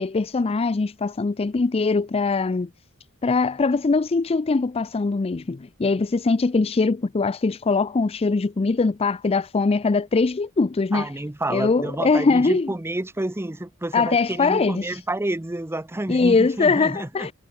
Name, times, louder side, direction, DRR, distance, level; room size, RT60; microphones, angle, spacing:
voice 1, 0.0-2.7 3.2-11.1 11.5-12.7 13.9-15.0 16.1-17.3, left 4 dB, 25° left, 0.4 m, -22 dB
voice 2, 10.9-17.3, right 1 dB, 10° right, 0.7 m, -29 dB
head